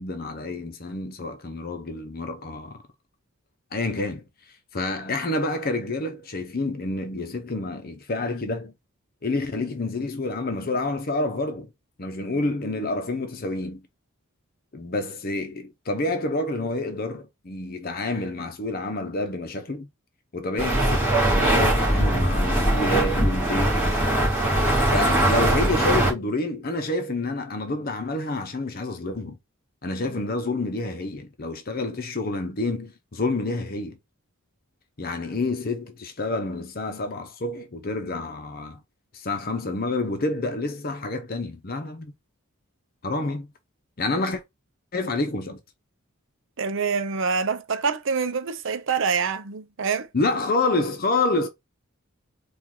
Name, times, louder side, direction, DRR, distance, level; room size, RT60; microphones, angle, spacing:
voice 1, 0.0-2.8 3.7-4.2 4.7-8.7 9.2-11.7 12.0-13.8 14.7-19.9 20.3-24.2 24.9-29.4 29.8-34.0 35.0-38.8 39.1-42.1 43.0-43.5 44.0-44.4 44.9-45.6 50.1-51.5, left 2 dB, 45° left, 0.7 m, -28 dB
sound 1, 20.6-26.1, right 1 dB, 10° right, 2.3 m, -21 dB
voice 2, 46.6-50.1, right 5 dB, 60° right, 0.6 m, -26 dB
4.5 x 2.5 x 3.8 m
head